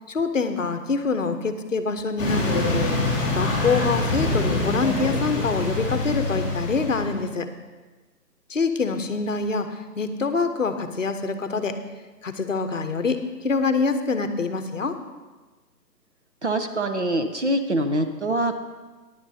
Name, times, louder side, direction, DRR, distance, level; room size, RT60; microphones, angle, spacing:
voice 1, 0.1-2.8 3.3-7.5 8.5-11.8 12.2-15.0, left 4 dB, 50° left, 8 dB, 0.8 m, -25 dB
sound 1, 2.2-7.2, left 2 dB, 5° left, 1.8 m, -25 dB
voice 2, 16.4-18.5, right 1 dB, 45° right, 6 dB, 0.7 m, -24 dB
14.5 x 10.5 x 2.7 m, 1.2 s
hypercardioid pair, 180°, 48 cm